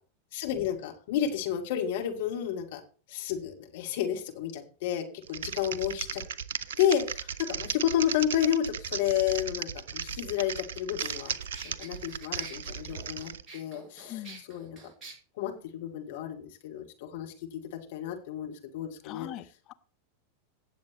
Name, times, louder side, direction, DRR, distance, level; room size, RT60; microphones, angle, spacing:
voice 1, 0.3-2.8 3.1-6.2 6.8-11.3 11.6-14.8 15.4-19.3, left 10 dB, 55° left, 2 dB, 2.3 m, -31 dB
Typing, 5.2-13.4, right 7 dB, 60° right, 0.5 m, -36 dB
sound 1, 10.5-10.6 11.0-15.1, right 3 dB, 20° right, 5.5 m, -47 dB
voice 2, 14.1-14.4 19.0-19.7, left 13 dB, 35° left, 10 dB, 0.7 m, -41 dB
17.5 x 7.3 x 3.1 m, 0.38 s
figure-of-eight pair, 90°, 0 cm